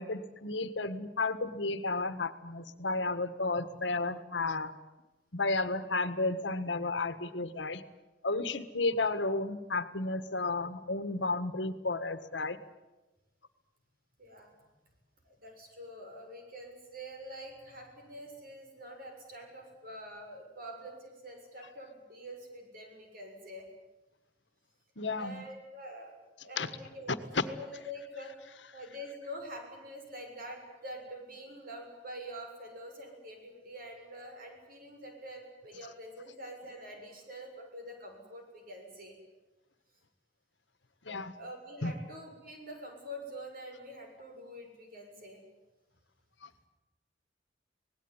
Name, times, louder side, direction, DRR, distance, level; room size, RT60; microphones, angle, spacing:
voice 1, 0.0-4.7 5.3-7.8 8.2-12.6 25.0-25.5 26.6-26.7 27.3-27.4 41.0-41.3 41.8-41.9 46.4-46.5, left 3 dB, 85° left, 12 dB, 1.6 m, -32 dB
voice 2, 14.2-14.5 15.2-23.7 25.1-26.1 26.4-27.1 27.4-28.3 28.7-39.1 41.4-45.4, equal, 55° right, 3 dB, 7.0 m, -46 dB
25.5 x 19.5 x 9.9 m, 1.1 s
head